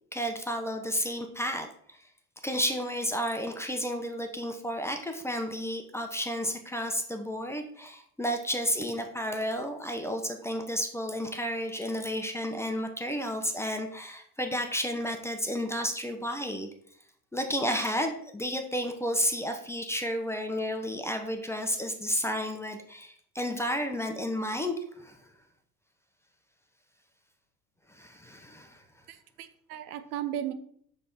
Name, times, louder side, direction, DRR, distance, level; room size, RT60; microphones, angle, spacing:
voice 1, 0.1-2.0 2.4-16.7 17.3-25.2 27.9-28.8, equal, 5° left, 5 dB, 0.8 m, -32 dB
voice 2, 29.1-30.5, right 11 dB, 70° right, 9 dB, 0.8 m, -36 dB
6.2 x 3.6 x 4.3 m, 0.63 s
hypercardioid pair, 70°, 46 cm